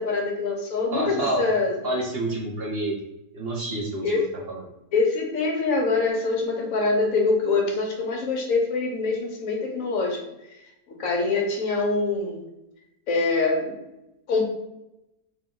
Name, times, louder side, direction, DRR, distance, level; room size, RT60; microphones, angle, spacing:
voice 1, 0.0-1.7 4.0-4.3 4.9-10.2 11.0-12.4 13.1-13.7 14.3-14.4, left 3 dB, 60° left, 1 dB, 1.3 m, -24 dB
voice 2, 0.9-1.4 1.8-3.0 3.3-4.6, right 1 dB, 55° right, -1 dB, 0.7 m, -28 dB
3.2 x 3.0 x 3.7 m, 0.89 s
omnidirectional pair, 1.7 m